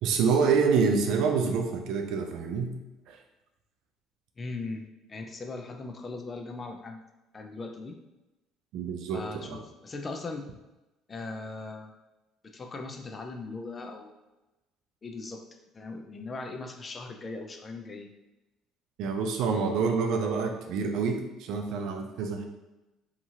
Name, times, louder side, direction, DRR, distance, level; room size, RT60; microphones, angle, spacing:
voice 1, 0.0-2.7 3.1-3.2 8.7-9.6 19.0-22.4, right 5 dB, 70° right, 4 dB, 0.4 m, -27 dB
voice 2, 4.4-7.0 7.3-8.0 9.1-10.5 11.1-11.9 12.4-14.1 15.0-18.1, left 3 dB, 35° left, 4 dB, 0.4 m, -39 dB
2.8 x 2.7 x 2.4 m, 1.0 s
supercardioid pair, 75°, 0 cm